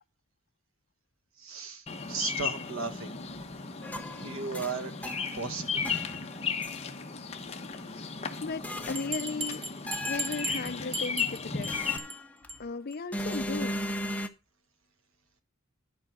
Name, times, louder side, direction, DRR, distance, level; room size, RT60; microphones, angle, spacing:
voice 1, 1.4-3.1 4.1-5.9, right 4 dB, 65° right, 1.4 m, -36 dB
Bird vocalization bird call bird song, 1.9-12.0, left 5 dB, 30° left, 1.0 m, -35 dB
sound 1, 3.8-5.5 5.9-6.8 8.6-9.3 9.9-10.7 11.7-12.6 13.1-14.3, equal, 5° left, 0.7 m, -37 dB
voice 2, 8.4-9.6 10.0-11.8 12.6-13.8, left 4 dB, 45° left, 0.5 m, -36 dB
Bell, 8.9-11.7 12.0-12.2 12.5-12.6 12.9-13.0 13.3-13.4, right 2 dB, 25° right, 1.3 m, -36 dB
11.0 x 5.2 x 6.1 m
head